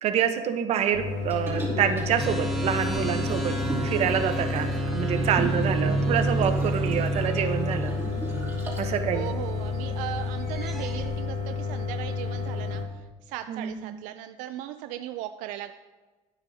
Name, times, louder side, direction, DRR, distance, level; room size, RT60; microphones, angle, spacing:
voice 1, 0.0-3.5 3.8-7.9 8.8-9.3 13.5-14.0, right 8 dB, 55° right, 8 dB, 0.9 m, -27 dB
sound 1, 0.9-12.8, left 4 dB, 65° left, 1.5 m, -31 dB
Liquid, 1.3-9.0 9.4-9.5, right 1 dB, 15° right, 2.8 m, -36 dB
sound 2, 2.2-11.2, right 3 dB, ahead, 1.2 m, -31 dB
voice 2, 9.1-15.7, right 13 dB, 85° right, 9 dB, 0.4 m, -37 dB
11.5 x 8.8 x 2.8 m, 1.3 s
cardioid pair, 125°, 13 cm